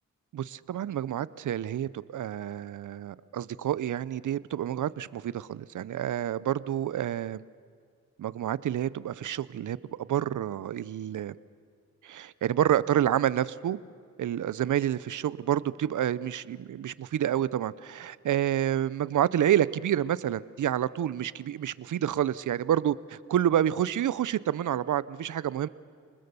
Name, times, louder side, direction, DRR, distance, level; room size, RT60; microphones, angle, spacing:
voice 1, 0.3-7.4 8.2-11.3 12.0-13.8 14.2-25.7, right 11 dB, 85° right, 18 dB, 0.6 m, -28 dB
27.5 x 20.5 x 6.8 m, 2.2 s
cardioid pair, 65°, 30 cm